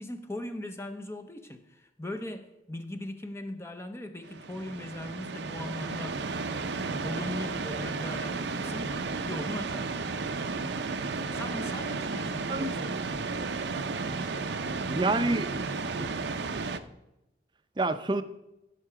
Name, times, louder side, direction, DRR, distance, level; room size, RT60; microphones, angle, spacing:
voice 1, 0.0-6.2 6.8-10.0 11.3-12.8, left 1 dB, 15° left, 0.6 m, -39 dB
sound 1, 4.2-16.8, right 4 dB, 75° right, 0.6 m, -33 dB
voice 2, 14.9-15.7 16.0-16.1 17.8-18.2, right 2 dB, 25° right, 0.6 m, -28 dB
15.0 x 6.6 x 4.9 m
head